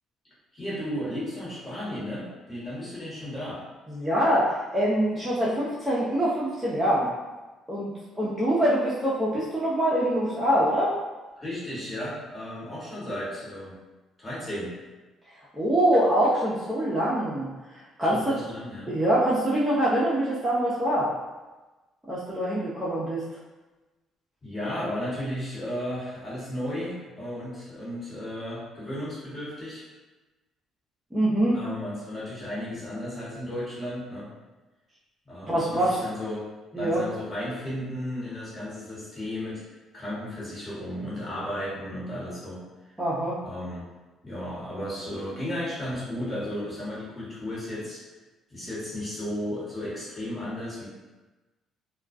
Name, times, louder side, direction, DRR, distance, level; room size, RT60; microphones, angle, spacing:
voice 1, 0.5-3.6 11.4-13.8 14.2-14.7 18.0-18.9 24.4-29.8 31.5-34.3 35.2-36.4 36.7-39.6 39.9-42.7 43.4-43.8 44.2-48.0 48.5-50.9, left 1 dB, 25° left, -8 dB, 1.3 m, -34 dB
voice 2, 3.9-7.1 7.7-7.9 8.2-10.9 15.5-17.5 18.0-18.3 18.9-21.1 22.1-23.2 31.1-31.6 35.5-36.0 36.7-37.0 43.0-43.4, right 1 dB, 10° right, -9 dB, 0.6 m, -24 dB
2.3 x 2.2 x 2.5 m, 1.2 s
supercardioid pair, 75°, 0 cm